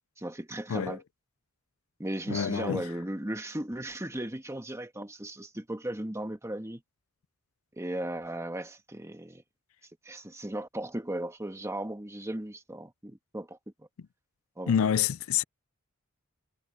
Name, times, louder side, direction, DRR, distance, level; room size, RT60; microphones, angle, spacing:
voice 1, 0.2-1.0 2.0-6.8 7.7-9.4 10.0-13.9 14.6-14.7, right 1 dB, 15° right, 1.4 m, -36 dB
voice 2, 2.3-2.9 14.7-15.4, left 8 dB, 70° left, 0.4 m, -27 dB
head